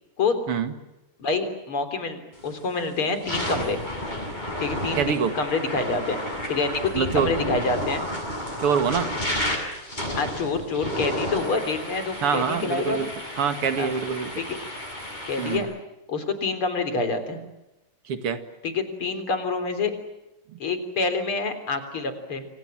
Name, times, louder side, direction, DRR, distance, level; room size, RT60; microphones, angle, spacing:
voice 1, 1.2-3.8 4.6-6.2 6.5-8.0 10.2-13.0 13.8-13.9 14.4-14.6 15.3-15.7 16.1-17.4 18.6-19.9 20.6-22.4, left 3 dB, 75° left, 8 dB, 4.5 m, -27 dB
sound 1, 2.4-2.6 3.1-15.6, left 1 dB, 20° left, 8.0 m, -32 dB
voice 2, 4.9-5.3 6.9-7.3 8.6-9.1 12.2-13.1 13.4-14.3 15.4-15.7 18.1-18.4 20.5-20.6, right 6 dB, 85° right, 9 dB, 2.9 m, -25 dB
29.5 x 25.5 x 7.6 m, 0.98 s
omnidirectional pair, 2.4 m